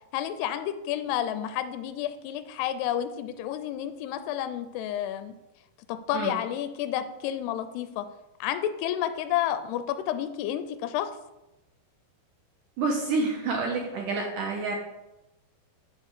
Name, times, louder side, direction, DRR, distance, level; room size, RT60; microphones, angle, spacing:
voice 1, 0.1-5.4 5.9-8.1 8.4-11.2, left 11 dB, 85° left, 10 dB, 2.6 m, -30 dB
voice 2, 12.8-14.8, right 3 dB, 70° right, 0 dB, 2.0 m, -28 dB
9.7 x 4.5 x 6.0 m, 0.97 s
omnidirectional pair, 4.7 m